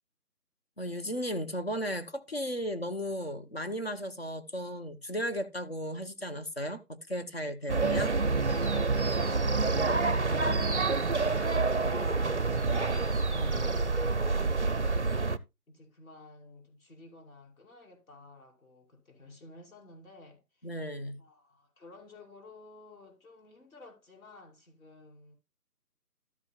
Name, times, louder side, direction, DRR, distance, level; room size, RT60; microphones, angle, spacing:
voice 1, 0.8-8.1 13.3-13.7 20.6-21.2, equal, 40° left, 0.9 m, -35 dB
sound 1, 7.7-15.4, right 3 dB, 50° right, 0.5 m, -27 dB
voice 2, 9.2-11.1 11.4-12.7 15.7-20.8 21.2-25.3, left 2 dB, 60° left, 6.0 m, -52 dB
13.5 x 8.6 x 2.2 m
figure-of-eight pair, 170°, 47 cm